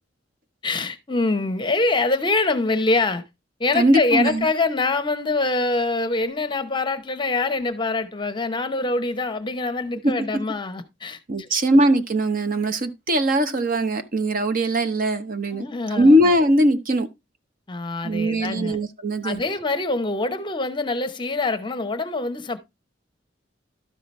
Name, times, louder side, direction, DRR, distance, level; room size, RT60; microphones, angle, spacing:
voice 1, 0.6-3.2 3.6-11.6 15.5-16.1 17.7-18.8 19.2-22.6, left 3 dB, 25° left, 0.8 m, -24 dB
voice 2, 3.7-4.5 10.0-10.1 11.3-17.1 18.0-19.4, right 1 dB, 45° right, 0.9 m, -20 dB
12.0 x 5.7 x 3.1 m
head